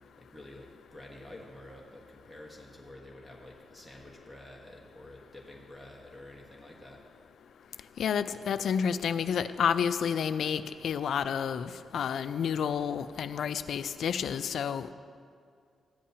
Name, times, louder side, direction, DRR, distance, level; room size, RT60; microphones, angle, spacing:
voice 1, 0.2-7.0, left 1 dB, ahead, -1 dB, 1.4 m, -49 dB
voice 2, 8.0-14.9, left 7 dB, 75° left, 13 dB, 0.3 m, -30 dB
14.5 x 10.0 x 2.8 m, 2.3 s
cardioid pair, 85°, 0 cm